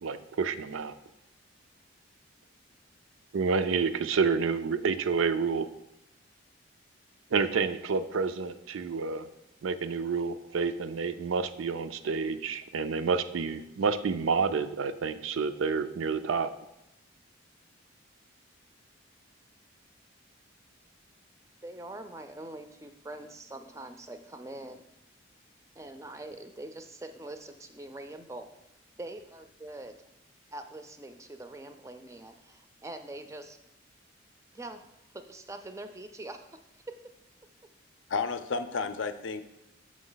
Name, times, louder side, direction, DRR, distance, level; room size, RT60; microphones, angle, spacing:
voice 1, 0.0-0.9 3.3-5.7 7.3-9.3 9.6-16.5, right 5 dB, 80° right, 11 dB, 0.4 m, -29 dB
voice 2, 21.6-24.8 25.8-28.5 29.0-30.0 30.5-33.6 34.5-34.8 35.1-36.6 36.9-37.0, right 2 dB, 15° right, 8 dB, 0.4 m, -43 dB
voice 3, 38.1-39.4, left 4 dB, 70° left, 9 dB, 0.5 m, -31 dB
6.2 x 6.2 x 3.9 m, 0.87 s
head